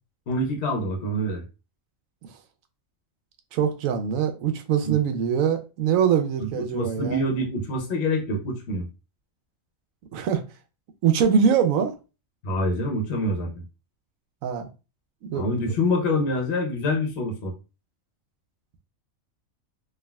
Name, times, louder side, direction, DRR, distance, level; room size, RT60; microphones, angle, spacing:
voice 1, 0.3-1.4 4.8-5.0 6.4-8.9 12.4-13.6 15.3-17.5, left 1 dB, 60° left, 0.9 m, -26 dB
voice 2, 3.5-7.2 10.1-10.4 11.0-11.9 14.4-14.7 15.2-15.5, right 7 dB, 80° right, 1.0 m, -23 dB
3.5 x 2.3 x 2.2 m
omnidirectional pair, 1.4 m